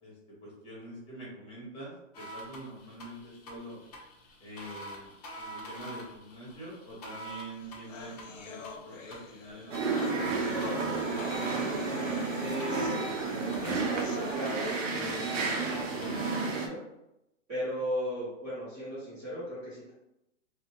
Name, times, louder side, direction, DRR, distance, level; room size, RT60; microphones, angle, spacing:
voice 1, 0.0-3.8 4.4-5.1 5.4-10.8, right 1 dB, 15° left, -6 dB, 1.1 m, -45 dB
sound 1, 2.1-16.5, right 1 dB, 35° left, 0.5 m, -46 dB
sound 2, 7.3-7.4 7.6-15.2, left 5 dB, 80° left, 0.5 m, -46 dB
sound 3, 9.7-16.7, right 4 dB, 90° right, 0.6 m, -31 dB
voice 2, 12.3-13.0 13.6-16.8 17.5-19.9, equal, 20° right, -10 dB, 0.5 m, -37 dB
2.5 x 2.0 x 2.8 m, 0.88 s
hypercardioid pair, 145°, 38 cm